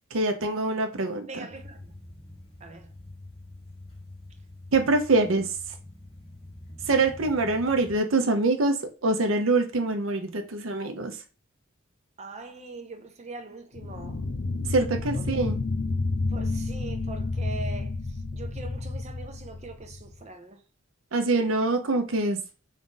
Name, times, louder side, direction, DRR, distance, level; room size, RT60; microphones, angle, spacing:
voice 1, 0.1-1.5 4.7-5.7 6.9-11.2 14.7-15.6 21.1-22.4, right 2 dB, 80° right, 0.7 m, -25 dB
voice 2, 1.3-1.9 2.6-2.9 12.2-14.2 15.1-15.3 16.3-20.6, right 3 dB, 35° right, 0.5 m, -42 dB
sound 1, 1.5-8.0, left 1 dB, 25° left, 1.1 m, -46 dB
sound 2, 13.8-20.2, left 3 dB, 60° left, 0.6 m, -30 dB
3.6 x 2.5 x 3.8 m
head